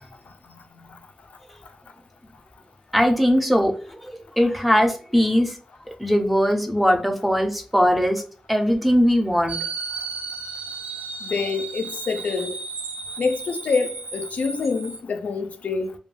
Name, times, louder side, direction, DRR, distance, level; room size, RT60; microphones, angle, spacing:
voice 1, 2.9-4.0 4.4-5.5 6.0-8.2 8.5-9.6, equal, ahead, 0.4 m, -20 dB
sound 1, 9.5-15.0, right 4 dB, 70° right, 0.5 m, -34 dB
voice 2, 11.2-12.5 13.2-15.9, left 4 dB, 85° left, 0.3 m, -26 dB
2.2 x 2.1 x 3.1 m
wide cardioid pair, 120°, 3 cm